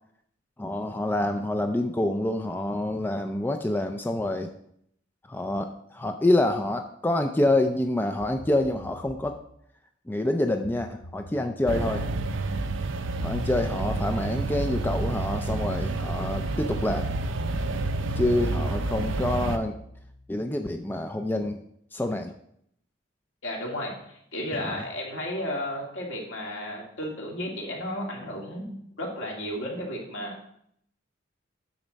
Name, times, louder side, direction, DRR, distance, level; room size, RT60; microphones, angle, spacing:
voice 1, 0.6-4.5 5.3-9.4 10.1-12.0 13.2-17.1 18.2-19.7 20.3-21.6 21.9-22.3 24.6-24.8, left 1 dB, 10° left, 5 dB, 0.4 m, -27 dB
sound 1, 8.2-9.5 10.6-14.3 15.2-16.5 17.2-21.1, equal, 85° left, 1.4 m, -48 dB
sound 2, 11.7-19.6, right 2 dB, 75° right, 0.6 m, -29 dB
voice 2, 23.4-30.5, left 1 dB, 70° left, -1 dB, 2.2 m, -33 dB
8.9 x 6.3 x 4.0 m, 0.71 s
head